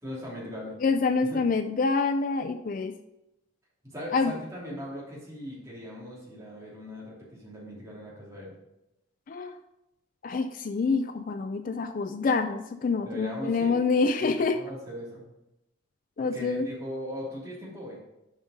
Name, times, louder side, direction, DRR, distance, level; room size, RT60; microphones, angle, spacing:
voice 1, 0.0-0.8 1.3-1.4 3.9-8.5 13.0-13.9 14.2-15.2 16.2-18.0, equal, 15° right, -6 dB, 3.0 m, -39 dB
voice 2, 0.8-2.9 4.1-4.3 9.3-9.5 10.2-14.6 16.2-16.7, left 4 dB, 45° left, 9 dB, 0.4 m, -26 dB
7.2 x 5.5 x 5.0 m, 0.90 s
head